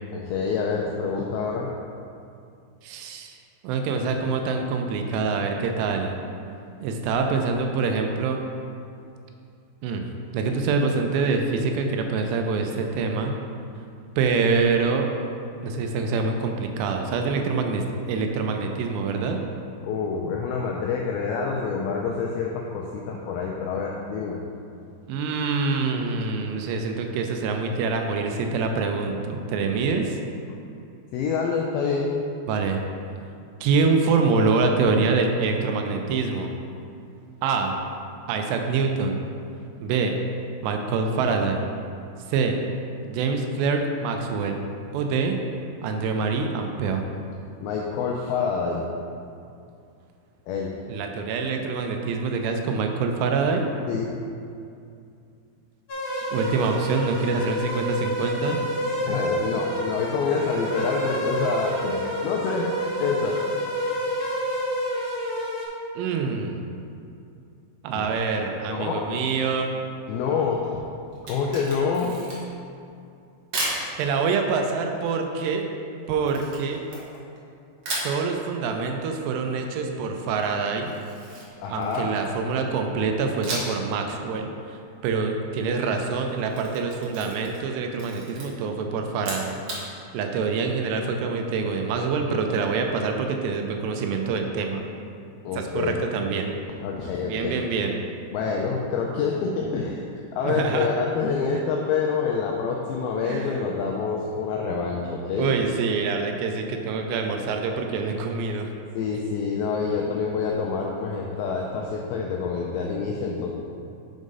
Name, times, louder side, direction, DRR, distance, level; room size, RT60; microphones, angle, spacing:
voice 1, 0.1-1.8 19.8-24.5 31.1-32.2 47.6-48.9 50.5-50.8 53.9-54.2 59.1-62.7 63.0-63.4 68.1-68.2 68.7-69.1 70.1-70.8 71.3-72.3 81.6-82.1 95.4-96.0 96.8-97.6 98.3-100.0 100.3-105.6 108.9-113.5, left 5 dB, 85° left, -1 dB, 2.1 m, -27 dB
voice 2, 2.8-3.4 3.6-6.2 6.8-8.4 9.8-10.0 10.3-13.3 14.2-15.1 15.6-19.4 25.1-30.2 32.5-32.8 33.6-36.5 37.4-37.8 38.3-39.2 39.8-40.1 40.6-41.7 42.3-42.6 43.0-44.6 44.9-45.4 45.8-47.0 50.9-53.7 56.3-58.6 66.0-66.7 67.8-69.7 74.0-75.7 76.1-76.8 78.0-80.9 81.7-89.6 90.1-94.9 95.6-96.6 97.2-98.0 100.4-100.9 103.3-103.6 105.4-108.7, right 4 dB, 80° right, 3 dB, 2.7 m, -25 dB
sound 1, 55.9-65.7, equal, 45° left, 2.4 m, -28 dB
Camera, 71.1-72.6 73.5-73.8 76.3-77.4 77.8-78.2 80.8-82.3 83.4-83.9 84.2-84.3 86.3-87.7 87.9-88.5 89.1-89.8, right 2 dB, 60° right, 1.6 m, -33 dB
6.4 x 4.8 x 5.3 m, 2.5 s
omnidirectional pair, 4.9 m